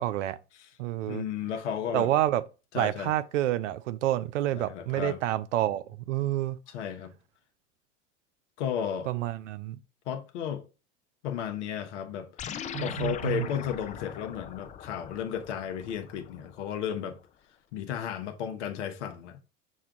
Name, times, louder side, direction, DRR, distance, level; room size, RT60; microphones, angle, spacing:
voice 1, 0.0-0.4 0.8-1.2 1.9-2.4 2.7-6.6 9.1-9.8 12.7-13.5, right 13 dB, 85° right, 0.5 m, -28 dB
voice 2, 1.1-2.1 2.7-3.1 4.5-5.2 6.7-7.1 8.6-9.1 10.1-10.7 11.2-17.2 17.7-19.4, left 9 dB, 75° left, 0.8 m, -34 dB
sound 1, 12.4-17.0, left 8 dB, 20° left, 0.3 m, -41 dB
6.3 x 2.3 x 3.7 m
hypercardioid pair, 90°, 36 cm